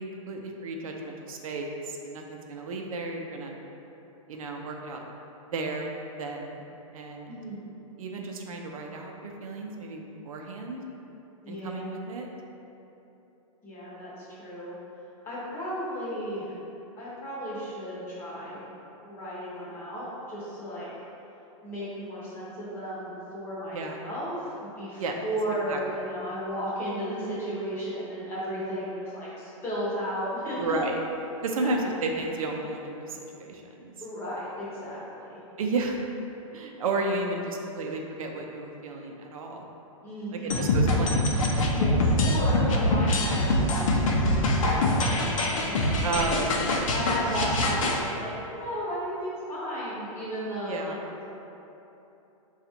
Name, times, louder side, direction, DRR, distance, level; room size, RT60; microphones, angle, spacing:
voice 1, 0.0-3.5 4.3-5.0 5.5-6.6 6.9-7.4 8.0-10.8 11.5-12.3 23.7-24.0 25.0-25.2 25.7-25.8 30.6-31.0 31.4-33.9 35.6-36.0 36.5-39.6 40.3-41.2 46.0-46.7 50.6-51.1, right 2 dB, 75° right, 1 dB, 0.5 m, -33 dB
voice 2, 7.3-7.7 11.4-11.8 13.6-14.8 15.2-16.5 17.0-18.6 19.0-20.9 21.6-30.8 31.6-31.8 34.0-35.4 40.0-40.7 41.7-46.5 46.9-51.3, equal, 15° left, -9 dB, 0.8 m, -34 dB
sound 1, 40.5-48.0, left 1 dB, 65° left, 0.6 m, -24 dB
3.8 x 2.4 x 4.3 m, 3.0 s
hypercardioid pair, 165°, 18 cm